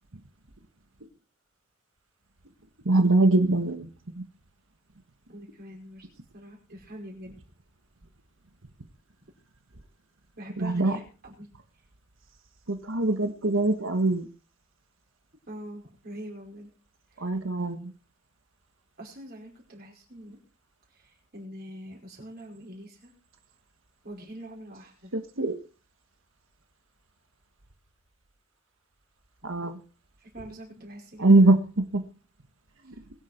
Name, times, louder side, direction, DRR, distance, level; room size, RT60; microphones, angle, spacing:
voice 1, 2.8-4.2 10.6-11.0 12.7-14.3 17.2-17.9 25.1-25.5 29.4-29.8 31.2-31.6 31.9-32.0 32.9-33.0, right 2 dB, 70° right, 7 dB, 1.5 m, -22 dB
voice 2, 5.3-6.1 6.3-7.4 10.4-11.5 15.5-16.7 17.1-17.3 19.0-20.4 20.9-23.1 24.0-25.1 30.2-31.5, right 1 dB, 45° right, -1 dB, 5.3 m, -44 dB
22.5 x 8.1 x 4.5 m, 0.36 s
head